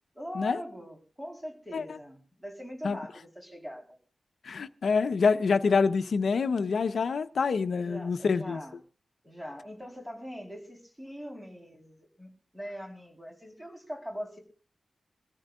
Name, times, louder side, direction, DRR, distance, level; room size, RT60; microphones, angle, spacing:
voice 1, 0.1-4.0 7.8-8.8 9.2-14.4, equal, 5° right, 4.2 m, -42 dB
voice 2, 4.4-8.6, left 5 dB, 70° left, 1.0 m, -26 dB
25.0 x 14.0 x 2.5 m
wide cardioid pair, 160°, 0 cm